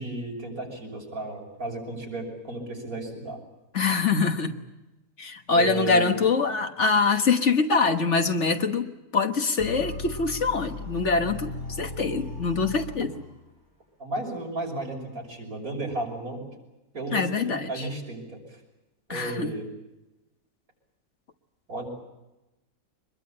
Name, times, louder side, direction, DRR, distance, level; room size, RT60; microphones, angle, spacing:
voice 1, 0.0-3.4 5.5-6.2 14.0-16.5 16.9-18.6 19.1-19.7 21.7-21.9, right 2 dB, 70° right, 0 dB, 6.5 m, -34 dB
voice 2, 3.7-4.6 5.2-8.9 9.1-11.5 11.8-13.2 17.1-17.7 19.1-19.5, left 4 dB, 55° left, 7 dB, 1.6 m, -24 dB
sound 1, 9.6-13.4, left 3 dB, 40° left, 8.5 m, -37 dB
24.5 x 21.5 x 8.7 m, 1.0 s
omnidirectional pair, 1.6 m